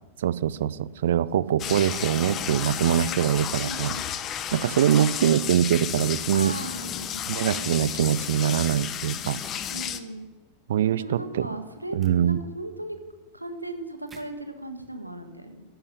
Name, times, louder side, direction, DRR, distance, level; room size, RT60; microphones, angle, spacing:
voice 1, 0.2-3.9 4.5-6.5 7.3-9.4 10.7-11.5 11.9-12.4, right 10 dB, 60° right, 18 dB, 0.6 m, -23 dB
sound 1, 1.6-10.0, left 9 dB, 30° left, 1.0 m, -32 dB
sound 2, 2.9-3.7 4.2-4.9 5.7-5.9 8.1-8.2 9.4-9.6 12.0-12.1 14.1-14.2, right 4 dB, 15° right, 2.1 m, -53 dB
voice 2, 3.6-4.1 4.6-4.9 6.3-7.7 9.7-10.3 10.8-12.0 12.2-13.0 13.3-15.6, right 1 dB, 85° right, 7 dB, 1.6 m, -37 dB
14.0 x 11.5 x 8.1 m, 1.2 s
figure-of-eight pair, 90°, 0 cm